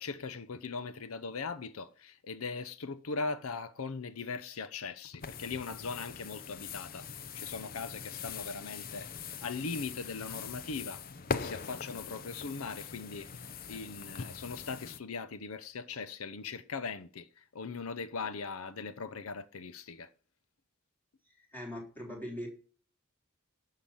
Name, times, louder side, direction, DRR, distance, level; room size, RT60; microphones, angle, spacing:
voice 1, 0.0-9.1 9.4-11.0 11.3-20.1, left 4 dB, 80° left, 0.7 m, -40 dB
sound 1, 5.2-15.0, left 6 dB, 45° left, 0.7 m, -42 dB
voice 2, 21.3-22.5, equal, 10° left, 3.8 m, -41 dB
12.0 x 5.7 x 8.6 m
head